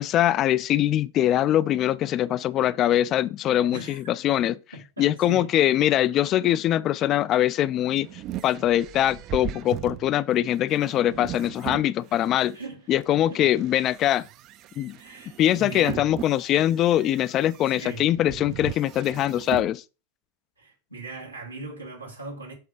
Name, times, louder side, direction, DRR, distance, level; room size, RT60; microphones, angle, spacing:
voice 1, 0.0-4.6 5.0-8.1 8.4-12.6 12.9-14.3 14.8-15.0 15.4-19.8, left 12 dB, 35° left, 0.3 m, -22 dB
voice 2, 4.7-5.5 12.5-12.9 13.3-13.5 14.9-16.1 17.7-18.1 20.6-22.5, right 2 dB, 90° right, 1.7 m, -39 dB
sound 1, 7.5-12.5 13.1-19.7, right 12 dB, 35° right, 0.4 m, -39 dB
7.2 x 3.7 x 4.8 m
figure-of-eight pair, 90°, 0 cm